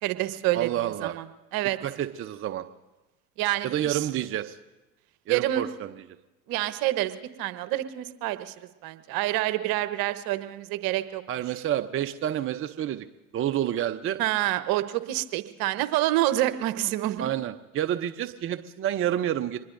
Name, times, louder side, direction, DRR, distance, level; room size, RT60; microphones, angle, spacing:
voice 1, 0.0-1.2 1.5-1.8 3.4-4.1 5.3-5.6 6.5-11.2 14.2-17.3, right 15 dB, 55° right, 12 dB, 1.1 m, -27 dB
voice 2, 0.5-1.1 1.8-2.6 3.6-4.6 5.3-5.9 11.3-13.1 13.3-14.2 17.2-19.6, right 11 dB, 30° right, 8 dB, 0.7 m, -29 dB
25.0 x 20.5 x 2.6 m, 1.1 s
hypercardioid pair, 85°, 43 cm